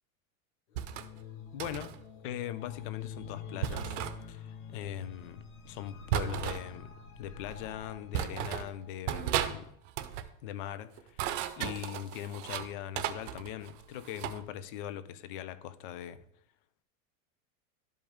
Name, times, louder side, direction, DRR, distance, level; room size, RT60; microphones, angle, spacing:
sound 1, 0.7-9.0, left 6 dB, 90° left, 1.4 m, -47 dB
sound 2, 0.8-1.1 1.6-2.0 3.6-4.2 6.1-6.6 7.5-7.6 8.1-8.7 9.1-9.6 9.9-10.3 11.0-12.7 13.0-14.4, right 11 dB, 60° right, 0.8 m, -34 dB
voice 1, 1.5-1.9 2.2-4.0 4.3-9.7 10.4-11.3 11.6-16.2, left 11 dB, 40° left, 0.4 m, -41 dB
12.0 x 5.2 x 3.6 m
supercardioid pair, 170°, 42 cm